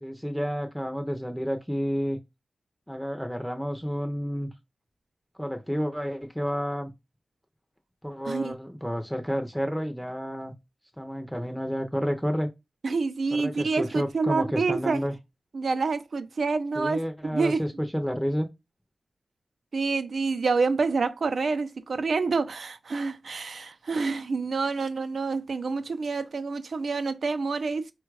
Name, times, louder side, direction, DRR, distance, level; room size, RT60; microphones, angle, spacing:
voice 1, 0.0-2.2 2.9-4.5 5.4-6.9 8.0-10.5 11.0-12.5 13.3-15.1 16.8-18.5, equal, ahead, 0.6 m, -30 dB
voice 2, 8.2-8.5 12.8-15.0 15.5-17.6 19.7-27.9, right 4 dB, 65° right, 0.5 m, -27 dB
4.3 x 2.3 x 4.6 m
wide cardioid pair, 100°, 0 cm